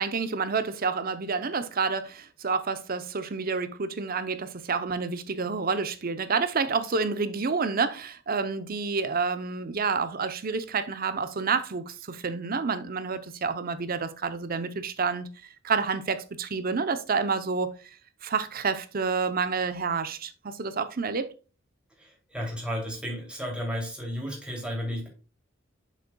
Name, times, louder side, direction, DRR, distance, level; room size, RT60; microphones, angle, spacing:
voice 1, 0.0-15.3 15.6-17.9 18.2-21.3, right 5 dB, 50° right, 0.7 m, -29 dB
voice 2, 22.0-25.1, equal, 5° right, 2.8 m, -33 dB
7.9 x 6.5 x 2.3 m
head